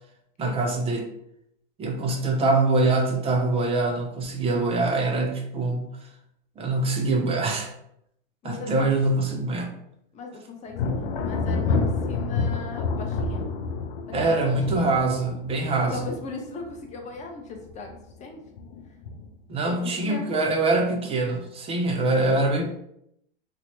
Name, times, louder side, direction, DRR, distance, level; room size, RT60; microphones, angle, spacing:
voice 1, 0.4-1.1 1.8-5.9 6.6-7.7 8.4-9.7 14.1-16.0 19.5-22.6, right 2 dB, 20° right, 3 dB, 0.5 m, -24 dB
voice 2, 8.4-8.9 10.1-13.5 14.2-14.9 15.9-18.4 19.6-20.3, left 4 dB, 25° left, 3 dB, 0.6 m, -38 dB
Thunder, 10.7-17.2 17.5-18.1 18.6-19.4, left 4 dB, 85° left, 0.5 m, -29 dB
2.9 x 2.1 x 3.0 m, 0.76 s
hypercardioid pair, 115°, 29 cm